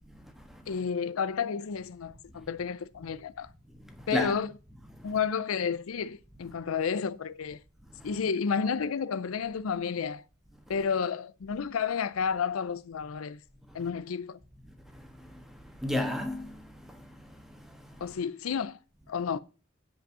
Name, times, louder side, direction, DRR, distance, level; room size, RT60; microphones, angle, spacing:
voice 1, 0.7-3.5 4.1-4.5 5.0-7.6 8.0-10.2 10.7-13.4 13.7-14.4 18.0-18.8 19.1-19.4, left 6 dB, 90° left, 0.5 m, -31 dB
voice 2, 3.8-4.4 5.0-5.1 8.0-8.1 13.7-13.8 14.9-17.9, left 1 dB, ahead, 1.4 m, -35 dB
8.0 x 5.2 x 7.3 m
head